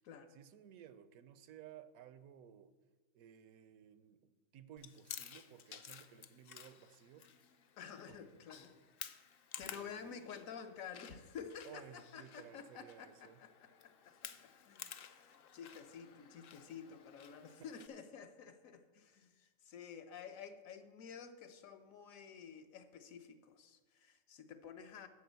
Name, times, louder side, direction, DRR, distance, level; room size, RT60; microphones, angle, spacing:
voice 1, 0.3-2.7 3.1-7.3 8.1-8.3 9.7-10.2 11.6-13.4, right 9 dB, 85° right, 13 dB, 1.1 m, -57 dB
Chewing mastication, 4.8-17.9, left 8 dB, 60° left, 0.6 m, -54 dB
voice 2, 7.8-8.7 9.6-25.1, left 7 dB, 75° left, 8 dB, 1.2 m, -51 dB
8.4 x 6.1 x 8.0 m, 1.3 s
omnidirectional pair, 1.4 m